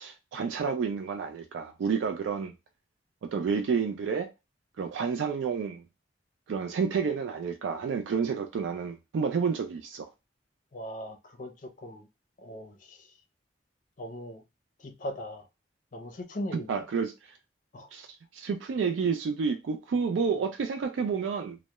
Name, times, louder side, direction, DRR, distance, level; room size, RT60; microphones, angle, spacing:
voice 1, 0.0-2.5 3.2-4.3 4.8-5.8 6.5-10.1 16.5-17.4 17.9-18.1 18.3-21.6, right 5 dB, 90° right, 0.3 m, -30 dB
voice 2, 10.7-12.1 12.4-13.1 14.0-14.4 14.8-15.4 15.9-16.7 17.7-17.9, equal, 45° left, 0.5 m, -39 dB
2.2 x 2.0 x 2.8 m
head